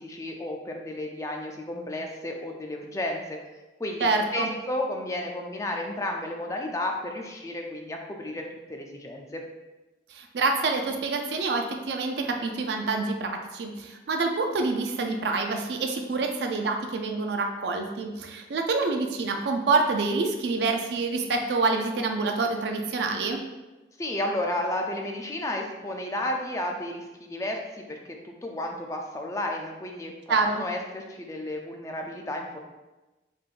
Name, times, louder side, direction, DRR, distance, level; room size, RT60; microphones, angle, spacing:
voice 1, 0.0-3.4 3.8-8.4 8.7-9.4 24.0-28.0 28.2-32.6, left 1 dB, 15° left, 2 dB, 0.4 m, -32 dB
voice 2, 4.0-4.5 10.1-23.4 30.3-30.6, right 3 dB, 75° right, 3 dB, 0.4 m, -27 dB
3.7 x 3.4 x 2.4 m, 1.1 s
head